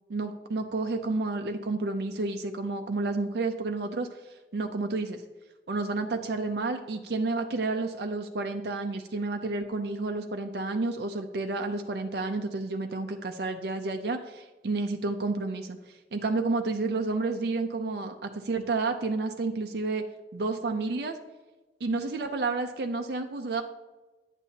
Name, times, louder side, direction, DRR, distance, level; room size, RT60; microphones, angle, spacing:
voice 1, 0.1-4.1 4.5-5.2 5.7-20.0 20.3-21.2 21.8-23.6, right 3 dB, 70° right, 5 dB, 0.5 m, -30 dB
11.0 x 8.2 x 2.8 m, 1.2 s
head